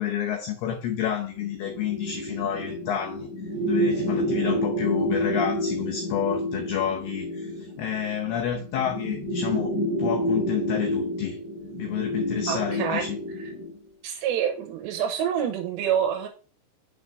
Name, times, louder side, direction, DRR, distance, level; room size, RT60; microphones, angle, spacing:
voice 1, 0.0-3.3 3.6-11.4 11.8-13.2, left 9 dB, 85° left, 2.2 m, -29 dB
sound 1, 1.3-13.8, equal, 45° right, 1.5 m, -29 dB
voice 2, 12.5-13.1 14.0-16.3, right 8 dB, 75° right, 2.8 m, -27 dB
6.9 x 6.1 x 3.2 m
omnidirectional pair, 5.7 m